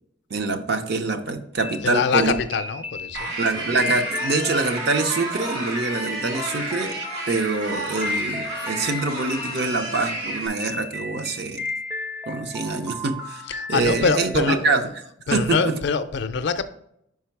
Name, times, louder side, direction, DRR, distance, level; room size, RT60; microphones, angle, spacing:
voice 1, 0.3-2.3 3.4-7.0 7.3-11.6 12.3-13.4 13.7-14.8 15.3-15.6, right 3 dB, 55° right, 0.6 m, -25 dB
sound 1, 1.6-14.6, left 2 dB, 10° right, 0.4 m, -34 dB
voice 2, 1.8-3.3 13.5-14.8 15.3-16.6, left 5 dB, 55° left, 0.4 m, -24 dB
sound 2, 3.1-10.5, right 1 dB, 80° right, 2.0 m, -31 dB
5.2 x 4.7 x 4.5 m
head